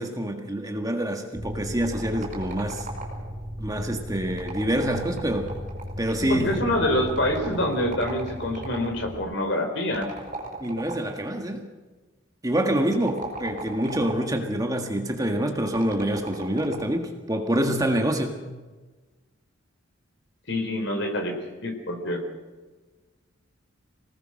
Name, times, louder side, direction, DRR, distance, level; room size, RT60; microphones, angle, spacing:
voice 1, 0.0-2.9 3.6-5.5 6.0-6.6 10.6-11.7 12.4-18.4, right 1 dB, 15° right, 4 dB, 1.6 m, -26 dB
sound 1, 1.3-9.2, equal, ahead, 2.4 m, -37 dB
sound 2, 1.8-3.4 4.3-6.1 7.1-8.9 9.9-11.3 12.8-14.4 15.7-17.0, right 2 dB, 35° right, 5.8 m, -38 dB
voice 2, 6.3-10.1 20.5-22.2, left 1 dB, 60° left, 4 dB, 4.1 m, -26 dB
25.0 x 18.5 x 6.4 m, 1.3 s
head